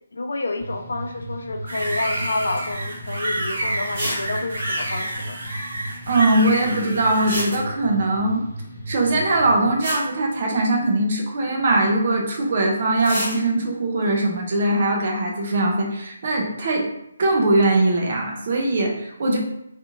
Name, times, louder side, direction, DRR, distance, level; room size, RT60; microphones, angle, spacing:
voice 1, 0.1-5.4, left 2 dB, 85° left, 4 dB, 0.5 m, -29 dB
sound 1, 0.6-9.7, right 1 dB, 55° left, 0.8 m, -36 dB
sound 2, 1.7-7.4, right 1 dB, 55° right, 0.8 m, -29 dB
sound 3, 2.6-2.8 3.2-3.3 3.9-4.3 4.5-4.6 4.8-4.9 7.1-8.0 9.4-9.5 9.8-11.0 12.9-13.4, equal, 15° right, 1.0 m, -29 dB
voice 2, 6.1-8.4 8.9-16.9 17.2-19.4, right 2 dB, 30° right, 1 dB, 0.4 m, -21 dB
2.5 x 2.4 x 2.9 m, 0.80 s
hypercardioid pair, 180°, 0 cm